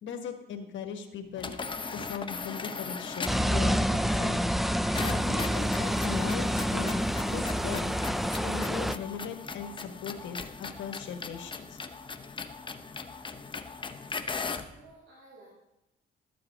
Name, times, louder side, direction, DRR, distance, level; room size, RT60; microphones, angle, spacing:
voice 1, 0.0-1.5 1.9-4.4 5.0-8.0 8.4-11.8, left 6 dB, 70° left, 5 dB, 1.4 m, -39 dB
sound 1, 1.4-3.5 5.0-14.8, left 4 dB, 25° left, 0.8 m, -39 dB
sound 2, 3.3-9.0, equal, ahead, 0.4 m, -28 dB
voice 2, 14.3-15.5, right 2 dB, 75° right, -5 dB, 3.1 m, -54 dB
13.0 x 7.8 x 5.0 m, 0.93 s
cardioid pair, 90°, 20 cm